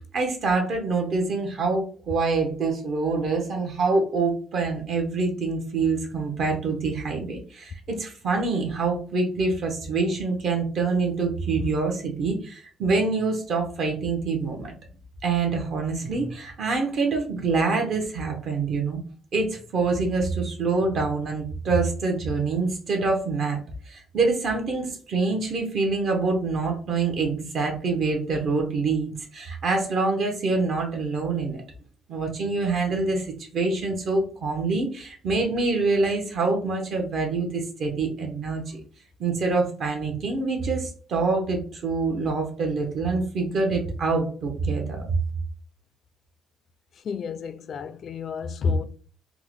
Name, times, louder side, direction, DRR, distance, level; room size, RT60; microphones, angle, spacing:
voice 1, 0.1-14.7 15.2-19.0 19.3-23.6 23.9-31.6 32.1-38.8 39.2-45.2, right 3 dB, 55° right, 0.7 m, -25 dB
voice 2, 47.0-48.8, left 4 dB, 50° left, 0.3 m, -29 dB
3.5 x 2.0 x 3.1 m
cardioid pair, 110°, 0 cm